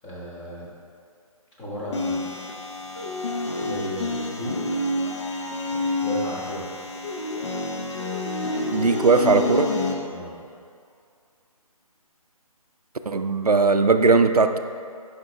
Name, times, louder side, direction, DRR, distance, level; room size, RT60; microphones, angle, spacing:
voice 1, 0.0-0.7 1.6-2.2 3.6-4.6 5.7-6.7 10.1-10.4, right 1 dB, 15° left, -7 dB, 1.4 m, -34 dB
sound 1, 1.9-9.9, left 2 dB, 50° left, 1.0 m, -28 dB
voice 2, 8.7-9.8 13.1-14.6, right 4 dB, 85° right, 8 dB, 0.5 m, -19 dB
10.5 x 5.5 x 3.2 m, 2.4 s
figure-of-eight pair, 145°, 19 cm